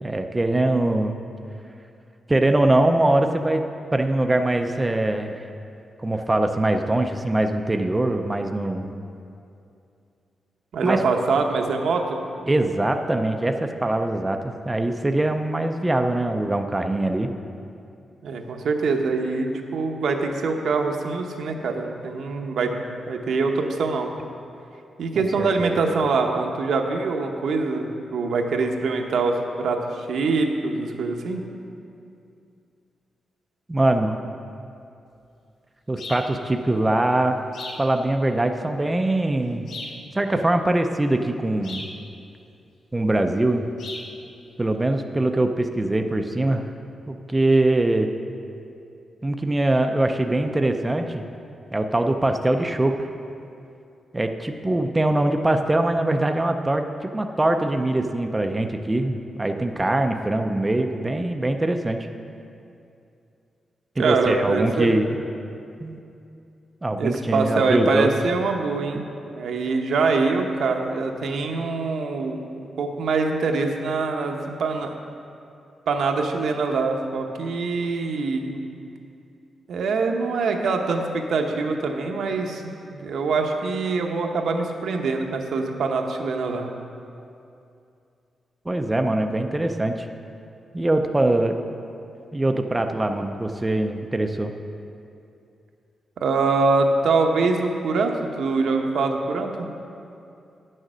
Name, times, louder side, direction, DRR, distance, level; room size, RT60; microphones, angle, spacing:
voice 1, 0.0-1.1 2.3-3.6 3.9-5.4 6.0-9.0 10.8-11.0 12.5-17.3 25.4-25.7 33.7-34.2 35.9-37.4 37.8-39.7 40.1-41.9 42.9-43.6 44.6-46.6 47.1-48.1 49.2-51.2 51.7-53.1 54.1-62.1 64.0-65.2 65.8-66.0 66.8-68.2 88.7-90.1 90.7-91.6 92.3-94.5, right 1 dB, 15° right, 5 dB, 0.4 m, -22 dB
voice 2, 10.7-12.2 18.2-24.1 25.0-31.4 64.0-64.9 67.0-74.9 75.9-78.6 79.7-82.6 82.9-86.7 96.2-99.7, right 4 dB, 70° right, 3 dB, 0.8 m, -24 dB
sound 1, 36.0-36.3 37.5-37.9 39.7-40.0 41.6-42.0 43.8-44.1, left 2 dB, 65° left, 1.1 m, -36 dB
9.7 x 6.5 x 6.1 m, 2.6 s
wide cardioid pair, 175°, 0 cm